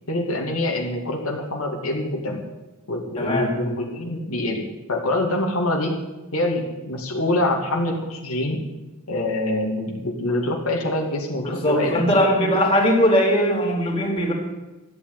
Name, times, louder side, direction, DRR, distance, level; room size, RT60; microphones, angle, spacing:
voice 1, 0.1-2.4 2.9-6.0 6.3-8.6 9.1-12.6, left 1 dB, 85° left, 0 dB, 2.8 m, -25 dB
voice 2, 3.2-3.5 11.4-14.3, equal, 25° left, -2 dB, 3.8 m, -20 dB
14.0 x 8.7 x 9.3 m, 1.1 s
head